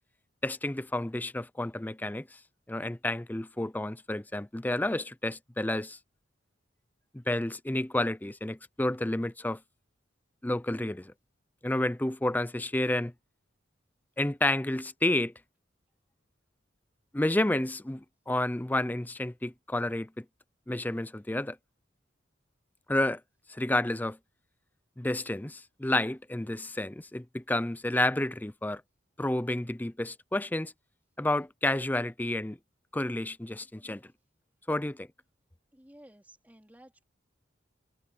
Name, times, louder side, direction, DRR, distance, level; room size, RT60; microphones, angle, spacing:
voice 1, 0.4-2.4 2.7-6.0 7.1-9.6 10.4-11.1 11.6-13.1 14.2-15.3 17.1-20.2 20.7-21.6 22.9-23.2 23.5-24.2 25.0-28.8 29.2-30.7 31.2-32.6 32.9-34.0 34.7-35.1, left 1 dB, 10° left, 0.5 m, -30 dB
voice 2, 35.7-37.0, right 1 dB, 10° right, 3.6 m, -55 dB
head